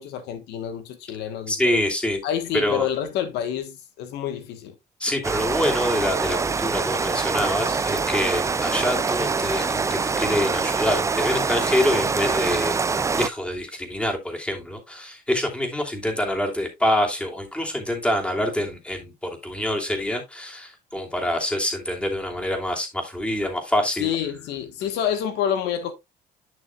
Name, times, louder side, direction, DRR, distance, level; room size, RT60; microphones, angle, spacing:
voice 1, 0.0-1.8 2.2-4.7 24.0-25.9, left 9 dB, 85° left, 1.3 m, -28 dB
voice 2, 1.5-2.2 2.5-2.9 5.0-12.8 13.1-24.1, left 1 dB, 5° left, 2.8 m, -26 dB
Rain, 5.2-13.3, right 4 dB, 15° right, 0.4 m, -24 dB
11.0 x 6.4 x 2.3 m
cardioid pair, 110°, 17 cm